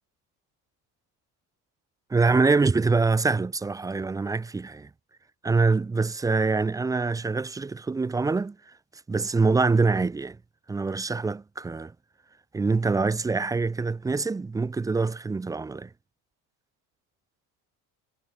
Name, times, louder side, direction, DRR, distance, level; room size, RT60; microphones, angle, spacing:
voice 1, 2.1-4.9 5.4-8.6 9.1-10.4 10.7-11.9 12.5-15.9, right 4 dB, 10° right, 0.3 m, -24 dB
cardioid pair, 125°, 44 cm